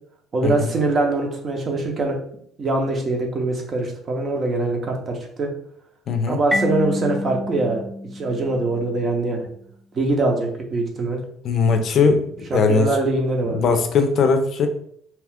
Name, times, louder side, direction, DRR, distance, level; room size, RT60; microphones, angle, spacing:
voice 1, 0.3-2.2 2.6-5.5 6.3-7.8 8.1-9.5 9.9-11.2 12.5-13.7, right 2 dB, 35° right, 2 dB, 0.8 m, -23 dB
voice 2, 6.1-6.4 11.4-13.0 13.5-14.7, left 5 dB, 50° left, 6 dB, 0.5 m, -19 dB
Marimba xylophone, 6.5-9.1, left 1 dB, ahead, 0.5 m, -28 dB
2.8 x 2.4 x 3.5 m, 0.65 s
cardioid pair, 130°, 0 cm